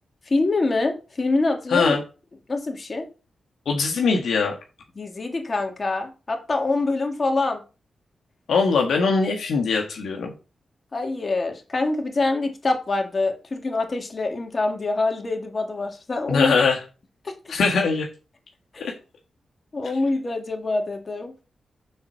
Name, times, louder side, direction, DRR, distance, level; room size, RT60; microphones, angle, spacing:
voice 1, 0.3-2.0 2.5-3.1 5.0-7.6 10.9-16.5 17.2-17.3 18.7-18.8 19.7-21.3, left 3 dB, 45° left, 4 dB, 2.3 m, -25 dB
voice 2, 1.7-2.0 3.6-4.5 8.5-10.3 16.3-16.8 17.5-18.1 18.8-18.9, left 4 dB, 80° left, 1 dB, 1.5 m, -21 dB
7.1 x 4.5 x 6.3 m, 0.32 s
cardioid pair, 50°, 0 cm